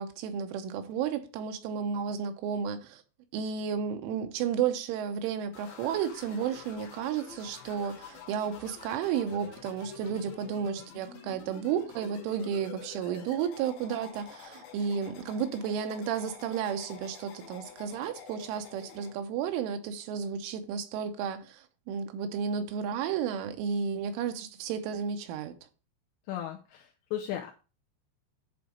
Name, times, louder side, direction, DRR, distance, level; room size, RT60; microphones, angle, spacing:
voice 1, 0.0-3.0 3.3-25.5, right 7 dB, 80° right, 3.3 m, -32 dB
sound 1, 5.5-19.1, left 7 dB, 65° left, 3.9 m, -48 dB
voice 2, 26.3-27.5, left 11 dB, 85° left, 2.5 m, -36 dB
10.5 x 4.0 x 5.0 m
omnidirectional pair, 5.7 m